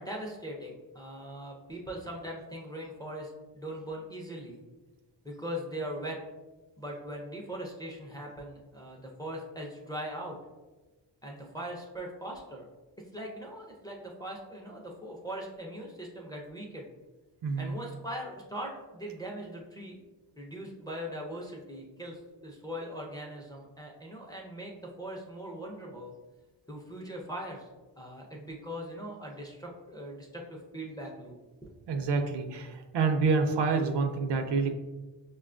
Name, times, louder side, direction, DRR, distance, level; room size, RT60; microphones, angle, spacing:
voice 1, 0.0-4.6 5.2-6.2 6.8-10.4 11.2-12.7 13.1-16.9 17.6-19.9 20.4-26.1 26.7-27.6 28.0-31.4, equal, 10° left, -2 dB, 0.4 m, -40 dB
voice 2, 17.4-17.8 31.9-34.7, right 4 dB, 65° right, 6 dB, 0.5 m, -27 dB
5.3 x 2.2 x 2.4 m, 1.2 s
wide cardioid pair, 130°, 45 cm